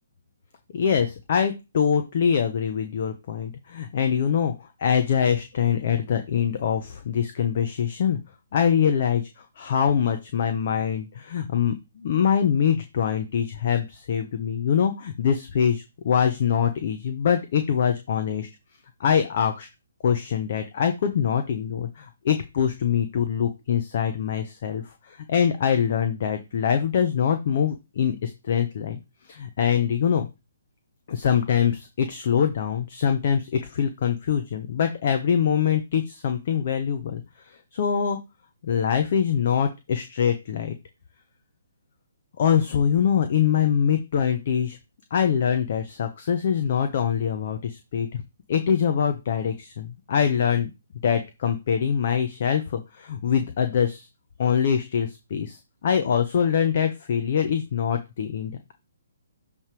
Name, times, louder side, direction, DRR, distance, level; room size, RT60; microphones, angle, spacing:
voice 1, 0.7-4.5 4.8-8.2 8.5-18.5 19.0-19.7 20.0-29.0 29.3-30.3 31.1-37.2 37.7-38.2 38.6-40.7 42.4-44.8 45.1-48.2 48.5-50.7 51.0-54.1 54.4-58.7, left 8 dB, 50° left, 7 dB, 1.0 m, -24 dB
7.1 x 3.5 x 4.8 m, 0.24 s
hypercardioid pair, 140°, 0 cm